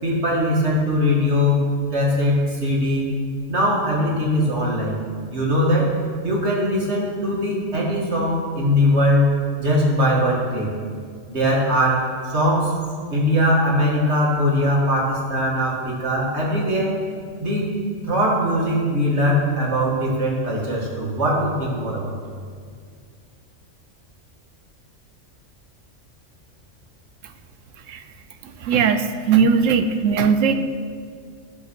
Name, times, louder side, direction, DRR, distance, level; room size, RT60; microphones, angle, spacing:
voice 1, 0.0-3.1 3.5-5.0 5.3-5.9 6.2-10.7 11.3-12.7 13.1-16.9 17.4-17.7 18.0-22.2, equal, 55° right, -4 dB, 2.2 m, -21 dB
voice 2, 28.6-30.6, right 6 dB, 80° right, 8 dB, 1.1 m, -18 dB
15.5 x 5.3 x 6.2 m, 2.1 s
omnidirectional pair, 1.3 m